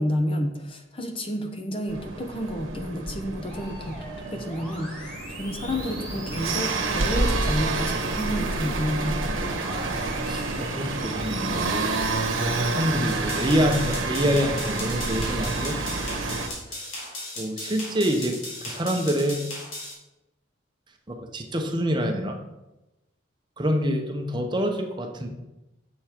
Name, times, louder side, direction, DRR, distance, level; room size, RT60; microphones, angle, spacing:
voice 1, 0.0-9.2, equal, 25° left, 5 dB, 0.8 m, -30 dB
sound 1, 1.9-16.5, right 2 dB, 80° right, 1.4 m, -28 dB
Musical instrument, 3.5-13.9 14.3-15.9, right 1 dB, 5° left, 2.1 m, -44 dB
voice 2, 9.7-11.9 12.6-15.8 16.7-16.9 17.4-19.4 21.1-22.4 23.6-25.3, equal, 20° right, 3 dB, 0.8 m, -27 dB
sound 2, 13.1-19.9, left 1 dB, 85° left, 3.2 m, -36 dB
8.2 x 7.0 x 4.5 m, 0.98 s
head